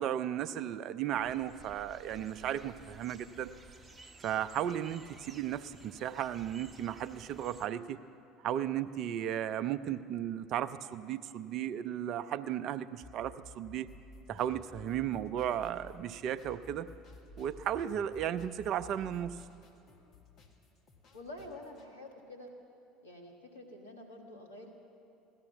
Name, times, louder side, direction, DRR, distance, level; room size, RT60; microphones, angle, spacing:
voice 1, 0.0-3.5 4.2-8.0 8.4-13.9 14.3-16.9 17.4-19.4, right 10 dB, 55° right, 13 dB, 0.5 m, -35 dB
sound 1, 1.1-7.7, right 3 dB, 20° right, 1.0 m, -55 dB
sound 2, 13.0-16.0 16.4-19.5, left 1 dB, ahead, 1.9 m, -53 dB
sound 3, 13.9-21.9, left 5 dB, 50° left, 1.6 m, -62 dB
voice 2, 21.1-22.5 23.0-24.7, left 1 dB, 85° left, 1 dB, 1.8 m, -48 dB
17.0 x 13.0 x 6.1 m, 2.6 s
hypercardioid pair, 65°, 0 cm